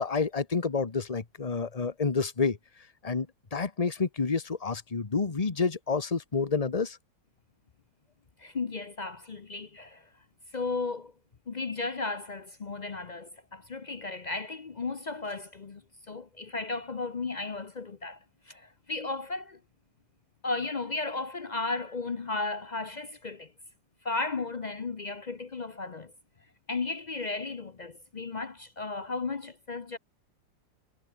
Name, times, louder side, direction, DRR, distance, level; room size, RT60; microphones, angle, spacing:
voice 1, 0.0-2.6 3.0-3.3 3.5-7.0, left 4 dB, 25° left, 1.2 m, -29 dB
voice 2, 8.4-10.1 10.5-11.1 11.5-18.2 18.4-19.6 20.4-23.5 24.0-26.1 26.7-30.0, left 3 dB, 50° left, 0.5 m, -35 dB
omnidirectional pair, 2.0 m